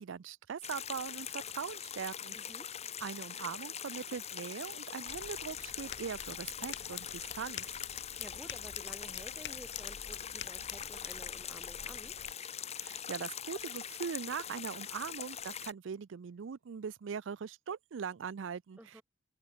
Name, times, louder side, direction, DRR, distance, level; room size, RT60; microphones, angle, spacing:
voice 1, 0.0-2.4 3.0-7.6 12.8-18.9, right 6 dB, 75° right, 0.4 m, -41 dB
sound 1, 0.6-15.7, left 9 dB, 35° left, 1.0 m, -42 dB
voice 2, 2.3-2.7 8.2-12.1 18.8-19.0, right 1 dB, 10° right, 0.9 m, -52 dB
sound 2, 5.1-12.3, left 9 dB, 65° left, 1.1 m, -47 dB
open air
head